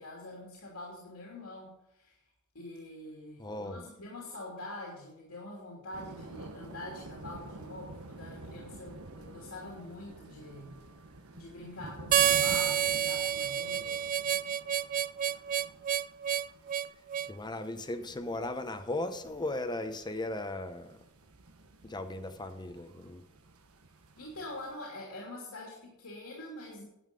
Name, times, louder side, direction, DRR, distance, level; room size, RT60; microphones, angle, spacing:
voice 1, 0.0-2.2 2.5-10.7 11.3-14.2 24.2-26.8, left 1 dB, 80° left, -3 dB, 3.0 m, -45 dB
voice 2, 3.4-3.9 17.2-21.0 21.8-23.2, left 2 dB, 20° left, 9 dB, 0.8 m, -37 dB
sound 1, 5.9-24.8, right 2 dB, 80° right, 1.3 m, -50 dB
Harmonica, 12.1-17.3, right 9 dB, 40° right, 0.3 m, -29 dB
11.0 x 8.8 x 5.3 m, 0.84 s
head